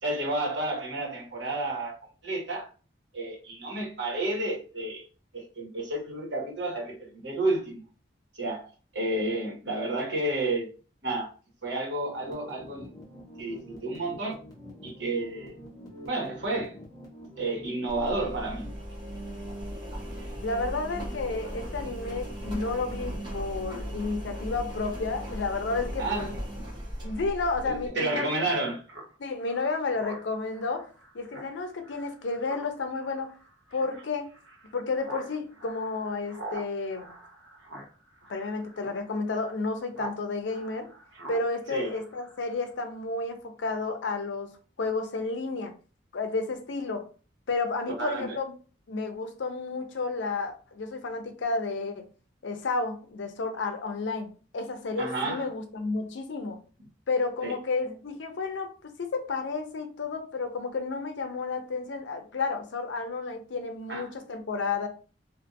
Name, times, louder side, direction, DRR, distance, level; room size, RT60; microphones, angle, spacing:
voice 1, 0.0-1.9 2.2-2.7 3.1-5.1 5.3-7.8 8.3-8.7 8.9-10.7 11.0-11.3 11.6-12.9 13.4-14.4 14.8-15.6 16.1-16.7 17.4-18.6 20.2-20.3 26.0-26.3 27.6-28.8 41.7-41.9 48.0-48.4 55.0-55.4 57.4-57.5 63.9-64.1, right 2 dB, 75° right, 1.3 m, -31 dB
sound 1, 12.1-18.8, equal, 20° left, 0.9 m, -46 dB
Engine, 17.9-27.9, equal, 25° right, 0.8 m, -37 dB
voice 2, 20.4-26.3 27.0-28.4 29.2-30.9 31.1-33.3 33.7-34.3 34.7-37.1 38.3-40.9 41.3-44.5 44.8-45.7 46.1-47.1 47.5-48.5 48.9-52.1 52.4-56.6 57.1-64.9, left 3 dB, 75° left, 0.5 m, -31 dB
Speech synthesizer, 28.9-40.2 40.5-42.7, right 2 dB, 90° right, 0.8 m, -45 dB
2.5 x 2.5 x 2.6 m
head